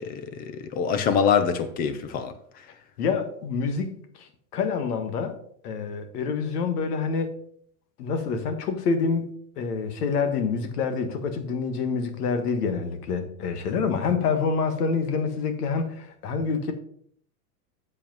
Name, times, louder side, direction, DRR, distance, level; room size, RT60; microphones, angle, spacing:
voice 1, 0.0-2.3, left 7 dB, 20° left, 0.4 m, -25 dB
voice 2, 3.0-5.4 5.6-7.3 8.0-16.7, left 5 dB, 80° left, 1.6 m, -27 dB
7.1 x 5.2 x 5.3 m
supercardioid pair, 135°, 45 cm